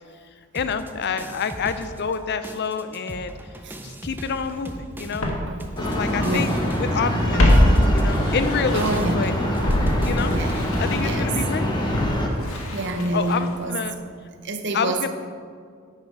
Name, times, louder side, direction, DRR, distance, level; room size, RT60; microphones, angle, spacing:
voice 1, 0.5-3.3 3.8-5.3 5.8-7.6 7.9-9.3 10.0-10.3 10.8-11.7 13.1-13.9 14.7-15.1, left 6 dB, 50° left, 11 dB, 0.5 m, -28 dB
sound 1, 0.5-2.2 2.4-10.7, right 1 dB, 10° right, 0.5 m, -38 dB
Walk footsteps, 4.5-4.6 5.2-6.7 7.0-9.2 9.6-13.7 13.9-14.0, left 1 dB, 70° left, 1.3 m, -23 dB
sound 2, 5.8-12.3, equal, 20° left, 1.2 m, -24 dB
voice 2, 5.9-6.7 7.5-7.6 8.7-9.4 9.9-11.6 12.7-14.1 14.4-15.1, right 2 dB, 55° right, 6 dB, 0.7 m, -29 dB
9.2 x 5.2 x 5.4 m, 2.1 s
head